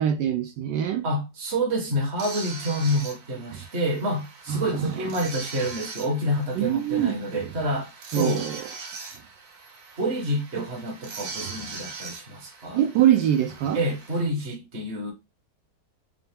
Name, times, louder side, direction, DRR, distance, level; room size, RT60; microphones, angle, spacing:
voice 1, 0.0-1.0 3.5-3.6 4.5-4.9 6.5-7.2 8.1-8.7 11.4-11.6 12.7-13.8, right 10 dB, 75° right, 1.2 m, -24 dB
voice 2, 1.0-8.5 10.0-12.8 13.7-15.1, equal, 40° right, 1.3 m, -28 dB
sound 1, 2.2-14.2, right 4 dB, 60° right, 1.4 m, -41 dB
5.5 x 2.0 x 3.4 m
omnidirectional pair, 2.0 m